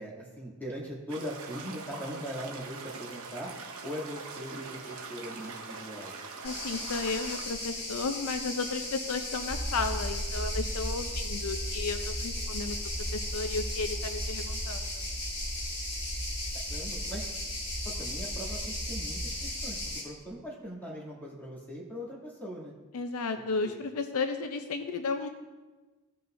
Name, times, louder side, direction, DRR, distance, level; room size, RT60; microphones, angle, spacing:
voice 1, 0.0-3.5 3.8-6.1 16.7-17.3 17.8-22.7 23.6-23.8, equal, 10° left, -6 dB, 2.4 m, -40 dB
sound 1, 1.1-7.5, right 4 dB, 70° right, 1.1 m, -43 dB
voice 2, 6.4-12.8 13.1-15.0 22.9-25.3, left 4 dB, 75° left, 7 dB, 0.6 m, -33 dB
sound 2, 6.4-20.0, left 1 dB, 30° left, 2.6 m, -37 dB
sound 3, 9.5-19.9, right 1 dB, 15° right, 0.7 m, -37 dB
15.5 x 5.5 x 2.6 m, 1.2 s
head